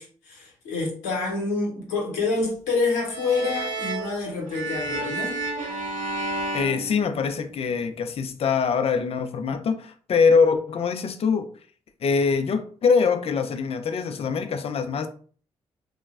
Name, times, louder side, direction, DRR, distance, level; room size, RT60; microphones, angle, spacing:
voice 1, 0.0-5.4, left 3 dB, 90° left, 0.7 m, -27 dB
sound 1, 3.1-7.7, right 2 dB, 75° right, 0.8 m, -31 dB
voice 2, 6.5-11.5 12.0-15.1, left 5 dB, 50° left, 0.4 m, -23 dB
3.0 x 2.0 x 2.3 m
hypercardioid pair, 45°, 13 cm